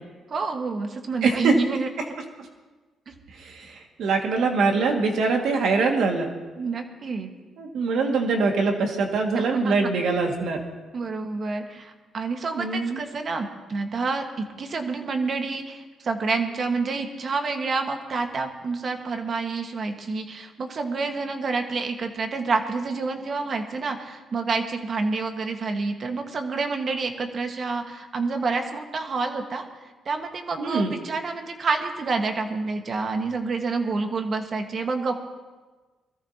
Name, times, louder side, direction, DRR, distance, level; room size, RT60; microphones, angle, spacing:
voice 1, 0.3-1.9 3.1-3.2 6.6-7.3 9.3-9.9 10.9-29.6 30.0-35.2, right 4 dB, 45° right, 5 dB, 1.6 m, -28 dB
voice 2, 1.2-1.5 3.4-6.3 7.6-10.6 12.6-13.0 30.6-30.9, right 4 dB, 70° right, 2 dB, 2.1 m, -23 dB
22.0 x 14.0 x 2.9 m, 1.3 s
cardioid pair, 90°, 0 cm